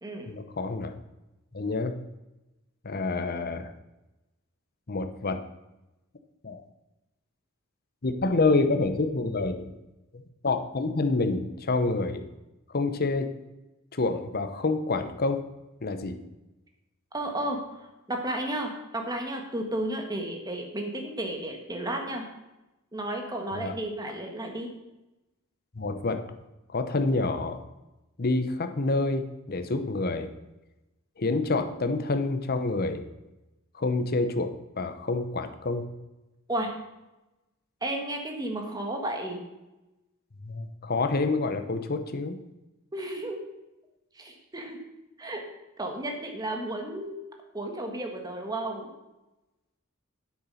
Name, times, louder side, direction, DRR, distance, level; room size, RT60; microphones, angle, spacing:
voice 1, 0.3-0.9 1.5-1.9 2.8-3.7 4.9-5.4 6.4-6.6 8.0-9.7 10.1-12.2 12.7-13.3 13.9-15.4 15.8-16.2 23.5-23.7 25.7-26.2 26.7-27.6 28.2-30.3 31.2-33.0 33.7-35.9 40.4-42.4, left 3 dB, 45° left, 8 dB, 0.9 m, -28 dB
voice 2, 17.1-22.2 22.9-24.7 36.5-36.7 37.8-39.4 42.9-43.4 44.1-44.8 45.2-45.4 45.8-47.1 47.5-48.9, right 1 dB, 20° right, 3 dB, 1.7 m, -33 dB
9.8 x 8.1 x 5.7 m, 1.0 s
head